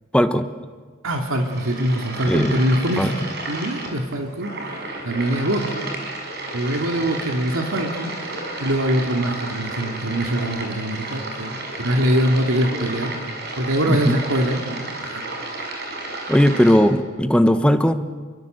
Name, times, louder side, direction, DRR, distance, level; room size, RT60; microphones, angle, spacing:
voice 1, 0.1-0.5 2.3-2.6 3.0-3.1 13.9-14.2 16.3-17.9, equal, 5° left, 9 dB, 1.1 m, -17 dB
voice 2, 1.0-3.1 3.4-4.5 5.0-5.8 6.5-8.1 8.6-13.1 13.6-15.2, right 1 dB, 85° right, 3 dB, 2.5 m, -23 dB
sound 1, 1.2-16.8, right 2 dB, 55° right, 5.9 m, -32 dB
28.0 x 23.0 x 8.1 m, 1.5 s
head